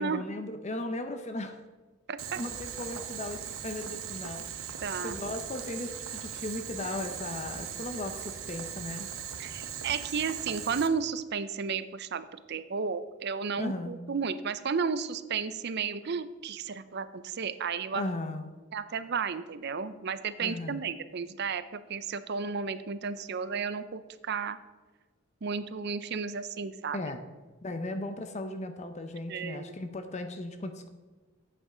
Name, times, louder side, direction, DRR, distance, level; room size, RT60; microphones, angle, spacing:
voice 1, 0.0-1.6 2.4-9.1 13.6-13.9 17.9-18.5 20.4-20.8 26.9-27.2 27.6-30.9, left 2 dB, 35° left, 8 dB, 0.6 m, -37 dB
voice 2, 2.1-2.4 4.8-5.2 9.4-18.0 18.7-24.6 25.4-27.0 29.3-29.7, right 5 dB, 50° right, 14 dB, 0.5 m, -33 dB
Boiling, 2.2-10.9, right 8 dB, 80° right, 0.9 m, -39 dB
8.8 x 8.0 x 4.9 m, 1.3 s
head